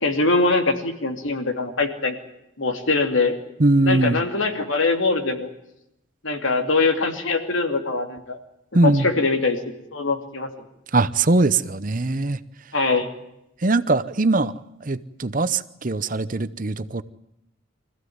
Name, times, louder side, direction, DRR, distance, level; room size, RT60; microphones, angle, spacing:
voice 1, 0.0-2.2 2.6-3.4 3.8-5.5 6.2-8.4 8.8-9.6 9.9-10.5 12.7-13.1, left 3 dB, 75° left, 5 dB, 2.9 m, -22 dB
voice 2, 3.6-4.2 8.7-9.1 10.9-12.4 13.6-14.5 14.8-17.0, right 2 dB, 40° right, 13 dB, 0.8 m, -21 dB
25.5 x 15.5 x 9.5 m, 0.84 s
head